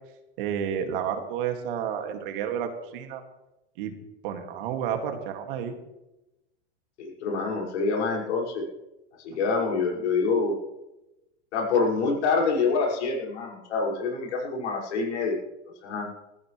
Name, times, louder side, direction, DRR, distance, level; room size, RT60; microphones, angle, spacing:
voice 1, 0.4-3.2 3.8-3.9 4.2-5.8, right 8 dB, 50° right, 5 dB, 2.4 m, -30 dB
voice 2, 7.0-8.6 9.2-10.6 11.5-15.4 15.8-16.1, left 4 dB, 80° left, -2 dB, 6.1 m, -26 dB
21.0 x 15.0 x 3.3 m, 0.96 s
supercardioid pair, 170°, 34 cm